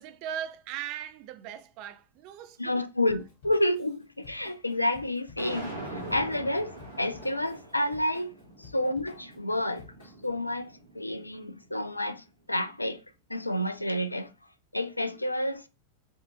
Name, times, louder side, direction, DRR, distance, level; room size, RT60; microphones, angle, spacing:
voice 1, 0.0-2.9, right 10 dB, 45° right, 0.5 m, -39 dB
voice 2, 2.6-5.7 6.1-9.8 10.2-13.0 13.3-14.3 14.7-15.6, left 1 dB, 85° left, 0.4 m, -29 dB
Drum kit / Drum, 3.1-10.4, left 5 dB, 50° left, 1.6 m, -53 dB
sound 1, 5.4-11.5, right 1 dB, 90° right, 1.3 m, -43 dB
4.8 x 2.7 x 2.7 m
figure-of-eight pair, 90°, 0 cm